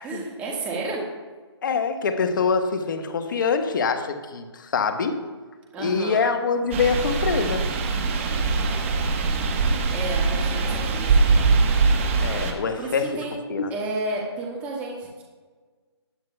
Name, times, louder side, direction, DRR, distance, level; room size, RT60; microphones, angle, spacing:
voice 1, 0.0-1.0 5.7-6.3 8.2-9.4 9.9-11.5 12.8-13.3 13.7-15.2, right 2 dB, 10° right, -2 dB, 1.6 m, -32 dB
voice 2, 1.6-5.1 5.8-7.7 12.2-13.1 13.5-13.7, left 5 dB, 45° left, 7 dB, 1.2 m, -24 dB
sound 1, 6.7-12.5, right 4 dB, 25° right, 1.2 m, -22 dB
19.5 x 9.4 x 2.3 m, 1.4 s
hypercardioid pair, 160°, 15 cm